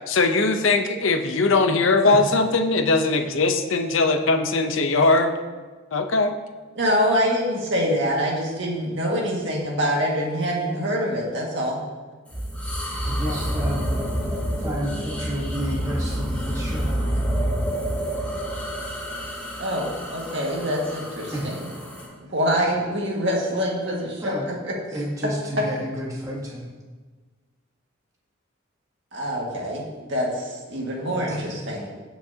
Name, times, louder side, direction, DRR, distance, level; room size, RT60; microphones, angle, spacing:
voice 1, 0.1-5.4 5.9-6.4 13.1-13.4 31.3-31.4, left 3 dB, 70° left, 7 dB, 0.8 m, -20 dB
voice 2, 6.8-11.8 19.6-21.5 22.3-24.3 24.7-24.8 29.1-29.8 30.1-31.9, equal, 60° right, -2 dB, 1.9 m, -25 dB
sound 1, 12.3-22.1, equal, 5° left, 2.8 m, -28 dB
voice 3, 13.0-13.9 14.6-17.2 21.3-21.6 24.2-24.5 24.9-26.7 31.3-31.6, equal, 15° right, -3 dB, 1.3 m, -31 dB
16.5 x 5.9 x 2.8 m, 1.4 s
head